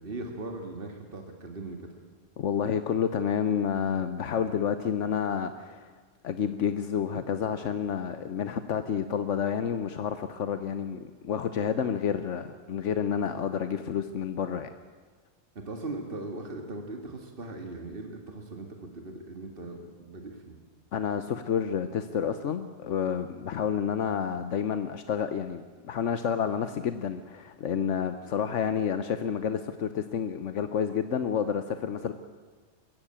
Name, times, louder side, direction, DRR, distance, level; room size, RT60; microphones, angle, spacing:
voice 1, 0.0-1.8 15.6-18.7 18.9-20.6, right 2 dB, 50° right, 3 dB, 2.2 m, -39 dB
voice 2, 2.4-5.9 6.2-14.7 20.9-32.1, left 7 dB, 80° left, 10 dB, 1.2 m, -29 dB
22.5 x 15.5 x 8.8 m, 1.4 s
omnidirectional pair, 1.2 m